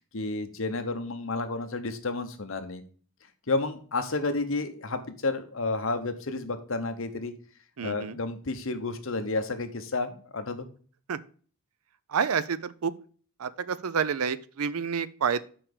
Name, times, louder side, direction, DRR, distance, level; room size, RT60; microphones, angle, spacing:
voice 1, 0.1-2.8 3.5-7.3 7.8-10.7, left 3 dB, 65° left, 8 dB, 1.0 m, -31 dB
voice 2, 7.8-8.1 11.1-11.2 12.1-12.9 13.4-15.4, right 6 dB, 80° right, 16 dB, 0.5 m, -28 dB
6.0 x 4.8 x 6.6 m, 0.42 s
head